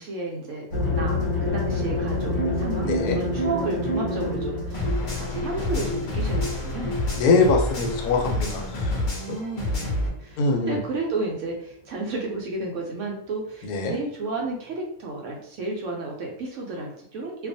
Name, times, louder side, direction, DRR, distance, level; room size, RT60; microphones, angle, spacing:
voice 1, 0.0-6.9 8.5-17.5, right 2 dB, 70° right, -1 dB, 0.8 m, -32 dB
sound 1, 0.7-9.6, left 1 dB, 40° left, 1.0 m, -28 dB
voice 2, 2.9-3.2 7.2-9.0 9.3-9.4 10.4-10.8 13.6-14.0, left 4 dB, 80° left, 3 dB, 1.1 m, -23 dB
sound 2, 4.7-10.1, left 1 dB, 55° left, 0.5 m, -28 dB
2.5 x 2.2 x 2.6 m, 0.66 s
omnidirectional pair, 1.6 m